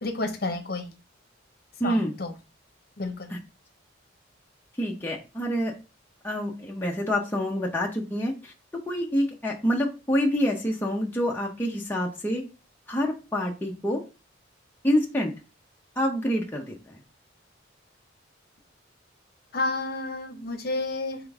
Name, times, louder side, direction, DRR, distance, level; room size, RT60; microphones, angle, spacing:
voice 1, 0.0-0.9 1.8-2.3 3.0-3.3 19.5-21.2, left 2 dB, 50° left, 6 dB, 0.8 m, -30 dB
voice 2, 1.8-2.1 3.3-3.4 4.8-5.7 6.2-8.5 8.9-12.4 12.9-14.0 14.8-15.3 16.0-17.0, equal, 10° left, -1 dB, 0.6 m, -27 dB
3.7 x 3.5 x 3.4 m, 0.30 s
head